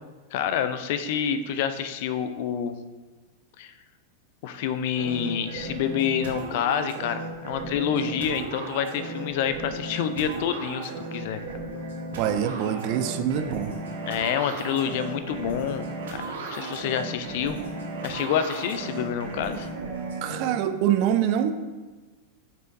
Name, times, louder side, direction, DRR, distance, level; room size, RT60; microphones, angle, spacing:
voice 1, 0.3-2.7 3.6-3.7 4.4-11.4 14.0-17.6 18.0-19.7, left 8 dB, 50° left, 10 dB, 0.5 m, -28 dB
sound 1, 5.0-20.6, right 3 dB, 60° right, 1.4 m, -35 dB
voice 2, 12.2-13.7 20.2-21.5, right 10 dB, 45° right, 8 dB, 0.6 m, -25 dB
9.2 x 5.5 x 2.7 m, 1.3 s
figure-of-eight pair, 90°, 0 cm